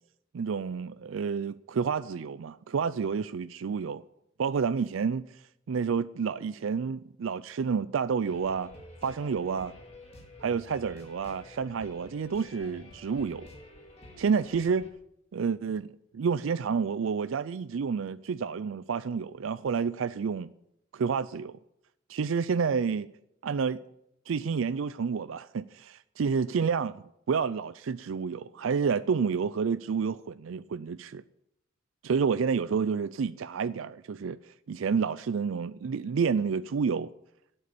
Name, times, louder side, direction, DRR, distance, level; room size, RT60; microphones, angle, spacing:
voice 1, 0.3-4.0 4.4-5.4 5.7-8.7 9.0-9.7 10.4-13.5 14.2-14.9 15.3-20.5 20.9-21.6 22.1-23.1 23.4-23.8 24.3-31.2 32.0-37.1, right 6 dB, 70° right, 0.4 m, -29 dB
sound 1, 8.2-14.9, left 1 dB, 30° left, 2.2 m, -49 dB
12.0 x 7.8 x 8.3 m
head